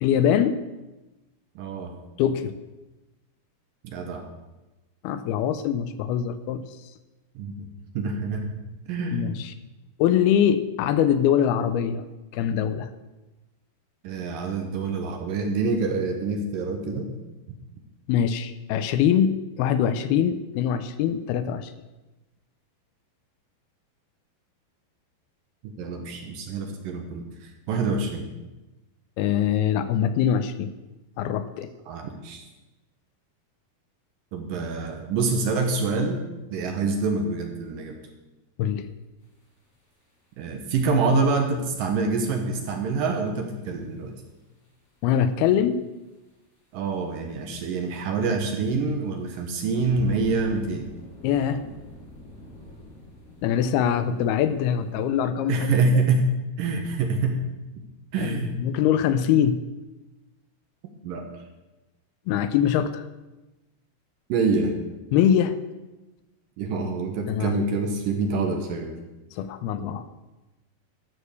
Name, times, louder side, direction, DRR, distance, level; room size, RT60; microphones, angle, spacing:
voice 1, 0.0-0.6 2.2-2.6 5.0-6.7 9.1-9.5 10.0-12.0 12.3-12.9 18.1-21.7 29.2-30.7 31.2-31.7 38.6-38.9 45.0-45.8 51.2-51.7 53.4-55.8 58.2-59.6 62.3-63.0 65.1-65.6 67.3-67.6 69.3-70.1, left 9 dB, 80° left, 12 dB, 2.5 m, -23 dB
voice 2, 1.6-1.9 3.8-4.3 7.4-7.7 7.9-8.5 8.9-9.3 14.0-17.1 25.6-28.3 31.9-32.4 34.3-36.2 36.5-38.0 40.4-44.1 46.7-50.9 55.5-56.3 56.6-57.4 58.1-58.5 61.0-61.3 64.3-64.7 66.6-69.0, right 3 dB, 70° right, 4 dB, 2.4 m, -26 dB
sound 1, 39.2-41.6 41.8-42.7 43.0-43.9 44.4-45.2 45.4-46.3 46.6-47.1 47.6-47.7 48.2-55.1, left 1 dB, 35° left, 3.9 m, -46 dB
12.5 x 6.4 x 6.7 m, 1.1 s
omnidirectional pair, 4.6 m